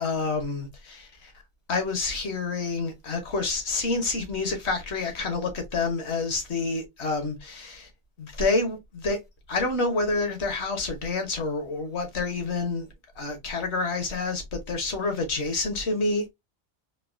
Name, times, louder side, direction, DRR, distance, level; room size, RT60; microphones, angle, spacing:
voice 1, 0.0-1.3 1.7-7.9 8.2-9.2 9.5-12.9 13.2-16.3, left 3 dB, 60° left, 1.3 m, -28 dB
4.0 x 2.6 x 2.5 m
omnidirectional pair, 1.3 m